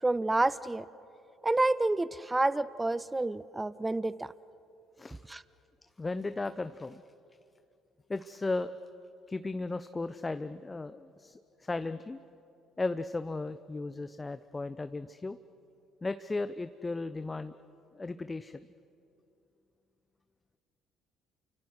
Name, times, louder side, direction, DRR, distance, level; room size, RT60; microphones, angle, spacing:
voice 1, 0.0-0.9 1.4-4.3 5.3-5.4, right 2 dB, 15° right, 18 dB, 0.6 m, -29 dB
voice 2, 6.0-7.0 8.1-8.7 9.3-12.2 12.8-15.4 16.0-17.6 17.9-18.7, left 3 dB, 25° left, 12 dB, 0.8 m, -35 dB
29.5 x 25.0 x 6.3 m, 2.7 s
hypercardioid pair, 50°, 0 cm